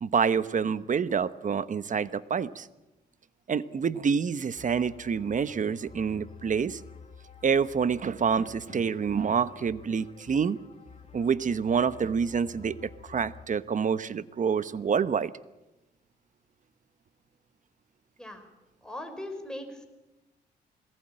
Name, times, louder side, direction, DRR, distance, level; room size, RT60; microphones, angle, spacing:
voice 1, 0.0-2.7 3.5-6.8 7.4-10.6 11.1-15.3, right 6 dB, 45° right, 15 dB, 1.0 m, -27 dB
sound 1, 4.6-13.4, left 5 dB, 35° left, 3.3 m, -50 dB
voice 2, 18.8-19.8, left 1 dB, 5° left, 5 dB, 5.4 m, -39 dB
22.0 x 19.0 x 8.9 m, 1.0 s
cardioid pair, 75°, 18 cm